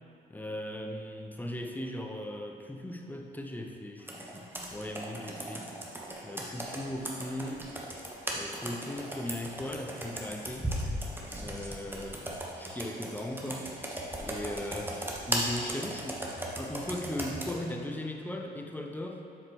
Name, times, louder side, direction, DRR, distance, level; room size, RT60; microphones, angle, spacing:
voice 1, 0.3-5.7 6.2-7.7 8.3-10.7 11.3-12.2 12.6-13.7 14.2-19.2, left 1 dB, 10° left, 3 dB, 0.7 m, -38 dB
Computer keyboard, 4.1-17.6, right 1 dB, 10° right, 1.1 m, -37 dB
7.6 x 4.8 x 4.6 m, 2.5 s
cardioid pair, 90°, 20 cm